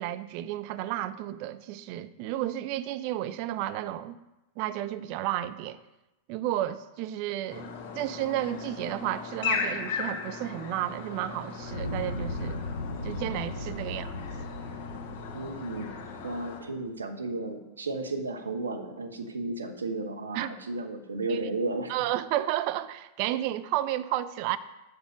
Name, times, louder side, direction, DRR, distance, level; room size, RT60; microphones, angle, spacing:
voice 1, 0.0-4.2 4.6-5.8 6.3-7.7 7.9-12.6 13.0-14.2 20.3-20.5 21.3-21.4 21.9-24.6, right 13 dB, 45° right, 0.4 m, -32 dB
sound 1, 7.5-16.6, left 5 dB, 45° left, 1.5 m, -37 dB
Fire, 11.6-16.7, left 2 dB, 80° left, 0.5 m, -37 dB
voice 2, 15.3-21.9, right 2 dB, 75° right, 0.9 m, -34 dB
7.1 x 6.6 x 5.0 m
figure-of-eight pair, 90°, 0 cm